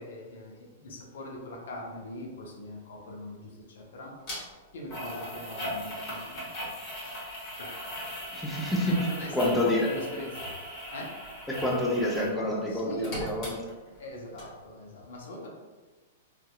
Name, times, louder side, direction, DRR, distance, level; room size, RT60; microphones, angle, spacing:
voice 1, 0.0-4.1 4.7-6.5 7.6-9.3 9.6-10.3 10.9-11.2 12.7-13.3 14.0-15.5, left 1 dB, 70° left, -1 dB, 0.6 m, -42 dB
sound 1, 4.3-4.4 4.9-12.4 12.6-14.1 14.4-14.5, equal, 45° left, 1.1 m, -38 dB
voice 2, 8.3-9.9 11.5-13.6, left 1 dB, 5° left, -4 dB, 0.5 m, -28 dB
2.7 x 2.3 x 2.2 m, 1.3 s
hypercardioid pair, 115°, 0 cm